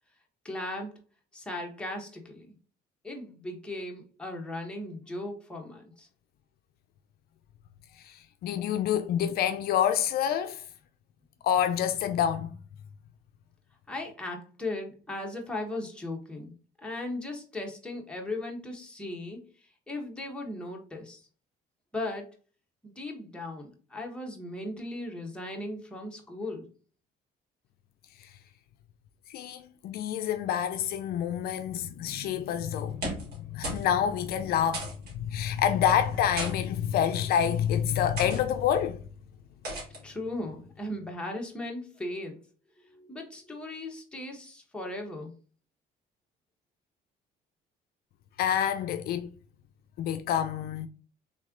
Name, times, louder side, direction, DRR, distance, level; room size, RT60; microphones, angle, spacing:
voice 1, 0.4-0.9 1.3-2.5 3.0-6.1 13.9-16.5 16.8-19.4 19.9-21.2 21.9-22.3 22.8-26.7 40.0-42.4 42.8-45.3, left 2 dB, 5° left, 1.2 m, -37 dB
voice 2, 8.0-10.6 11.4-12.5 29.3-34.9 35.1-39.0 48.4-49.3 50.0-50.9, left 9 dB, 65° left, 0.4 m, -27 dB
sound 1, 32.8-33.4 33.6-33.9 34.2-34.3 34.7-35.1 36.1-36.5 37.3-37.5 38.2-38.4 39.6-40.0, right 1 dB, 70° right, 2.0 m, -35 dB
3.6 x 3.2 x 3.6 m
cardioid pair, 110°, 17 cm